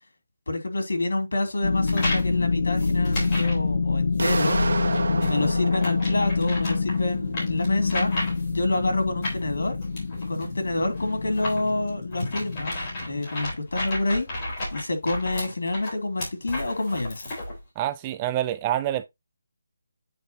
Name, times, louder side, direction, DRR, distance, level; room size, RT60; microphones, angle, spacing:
voice 1, 0.5-4.6 5.0-8.1 8.5-9.8 10.2-12.7 13.0-14.3 14.7-17.3, left 2 dB, 90° left, 3.0 m, -27 dB
sound 1, 1.6-13.2, left 4 dB, 55° left, 1.4 m, -26 dB
sound 2, 1.9-2.3 2.8-3.6 4.1-4.4 4.9-8.6 9.2-17.6, left 1 dB, 20° left, 3.7 m, -33 dB
sound 3, 4.2-7.0, right 3 dB, 65° right, 1.7 m, -30 dB
voice 2, 17.8-19.1, right 12 dB, 15° right, 0.3 m, -27 dB
9.0 x 4.9 x 2.8 m
hypercardioid pair, 180°, 0 cm